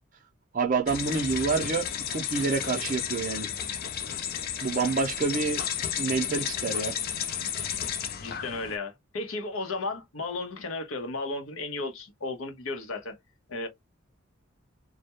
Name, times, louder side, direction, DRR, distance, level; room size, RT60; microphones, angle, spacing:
voice 1, 0.5-3.5 4.6-5.6 5.9-6.9, right 4 dB, 40° right, 0.4 m, -28 dB
sound 1, 0.9-8.8, left 9 dB, 45° left, 0.3 m, -33 dB
voice 2, 8.2-13.1 13.5-13.7, left 3 dB, 80° left, 0.7 m, -34 dB
2.2 x 2.1 x 2.8 m
head